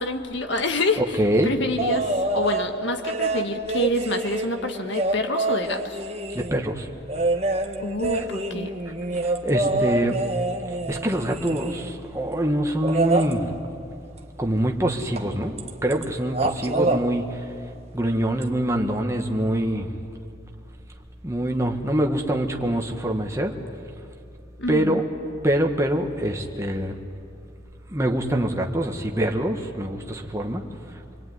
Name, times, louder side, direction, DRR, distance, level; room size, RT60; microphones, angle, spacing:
voice 1, 0.0-1.2 1.4-6.0 7.8-8.7 24.6-25.0, left 1 dB, 65° left, 6 dB, 1.7 m, -27 dB
voice 2, 1.2-1.5 6.3-6.9 9.2-10.2 10.9-13.5 14.4-15.5 15.8-17.5 17.9-19.9 21.2-23.5 24.7-25.0 25.4-27.0 27.9-30.6, right 1 dB, 15° right, 2 dB, 1.7 m, -24 dB
sound 1, 1.8-2.7 3.0-6.6 7.1-12.0 12.8-13.3 15.2-15.3 15.6-16.0 16.3-17.0 18.4-18.5, right 2 dB, 30° right, 1.5 m, -26 dB
27.0 x 22.0 x 9.6 m, 2.5 s
head